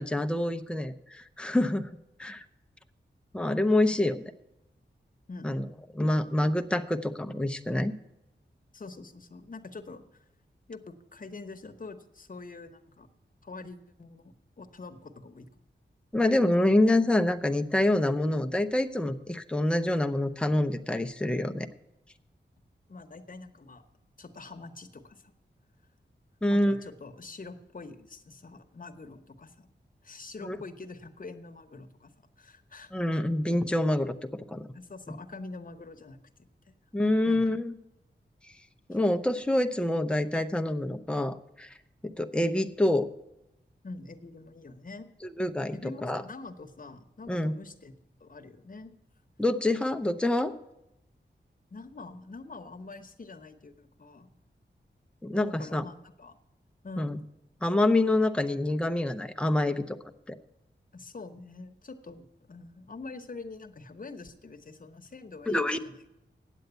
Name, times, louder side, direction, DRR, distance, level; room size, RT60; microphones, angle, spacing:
voice 1, 0.0-1.9 2.2-2.4 3.3-4.2 5.4-5.6 5.9-7.9 16.1-21.7 26.4-26.8 30.4-30.6 32.9-34.7 36.9-37.7 38.9-41.7 42.0-43.1 45.2-45.8 46.0-46.2 47.3-47.5 49.4-50.5 55.2-55.8 57.0-57.2 57.6-60.0 60.3-60.4 65.5-65.8, left 1 dB, 5° left, 8 dB, 0.6 m, -26 dB
voice 2, 5.3-5.6 8.7-10.2 10.7-13.1 13.4-15.5 22.9-23.8 24.2-25.3 26.5-29.7 30.0-32.9 34.7-36.2 36.7-36.8 37.2-37.6 43.8-45.1 45.7-47.9 48.2-48.9 51.7-54.3 55.4-56.4 56.8-57.2 60.9-66.1, left 3 dB, 45° left, 6 dB, 1.0 m, -45 dB
9.2 x 7.9 x 8.1 m, 0.88 s
wide cardioid pair, 75°, 19 cm